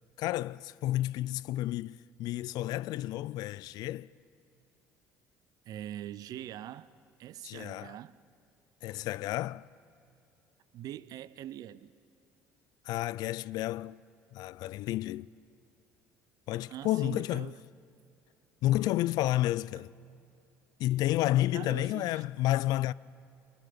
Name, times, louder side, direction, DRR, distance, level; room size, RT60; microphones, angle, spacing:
voice 1, 0.2-4.1 7.4-8.0 8.8-9.7 12.8-14.0 14.3-15.3 16.5-17.5 18.6-19.9 20.8-22.9, left 15 dB, 65° left, 0.4 m, -31 dB
voice 2, 5.7-6.9 7.2-8.2 10.7-12.0 16.7-17.6 21.5-22.2, right 12 dB, 60° right, 0.6 m, -43 dB
23.0 x 19.5 x 5.8 m
hypercardioid pair, 65°, 7 cm